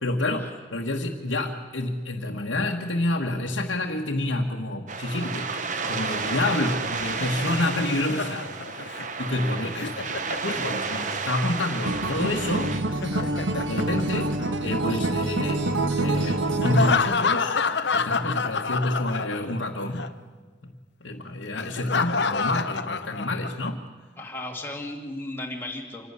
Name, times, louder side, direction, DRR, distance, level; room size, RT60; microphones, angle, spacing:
voice 1, 0.0-5.5 5.9-8.9 9.2-10.1 10.4-12.7 13.6-14.3 14.6-15.7 16.0-17.6 17.9-20.0 20.6-20.7 21.0-23.8, left 1 dB, 80° left, -2 dB, 1.4 m, -28 dB
sound 1, 4.9-12.8, right 4 dB, 40° right, 1.1 m, -31 dB
Laughter, 7.0-11.1 12.8-14.9 16.6-19.7 19.9-20.1 21.6-23.7, left 5 dB, 65° left, 0.8 m, -28 dB
Acoustic guitar, 11.9-17.0, right 2 dB, 80° right, 1.4 m, -26 dB
voice 2, 24.2-26.1, left 1 dB, 10° left, 0 dB, 2.3 m, -35 dB
26.0 x 12.5 x 9.8 m, 1.5 s
head